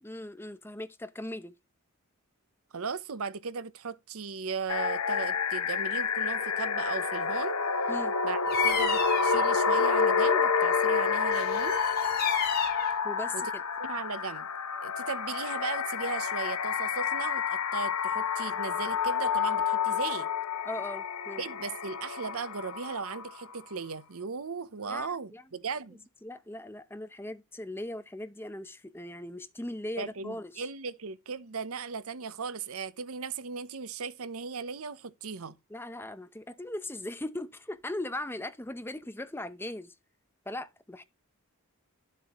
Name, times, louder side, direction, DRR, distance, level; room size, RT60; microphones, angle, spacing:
voice 1, 0.0-1.5 7.9-8.1 13.0-13.6 20.6-21.4 24.9-25.4 26.2-30.7 35.7-40.0 40.5-41.0, left 1 dB, 10° left, 0.7 m, -39 dB
voice 2, 2.7-7.6 8.2-11.8 13.3-13.4 13.8-14.5 14.8-20.3 21.4-26.0 30.0-35.6, right 5 dB, 75° right, 0.7 m, -37 dB
sound 1, 4.7-23.5, left 5 dB, 85° left, 0.9 m, -29 dB
Bird vocalization bird call bird song, 8.5-9.4 11.3-12.9, left 7 dB, 45° left, 2.5 m, -32 dB
12.5 x 7.6 x 3.0 m
head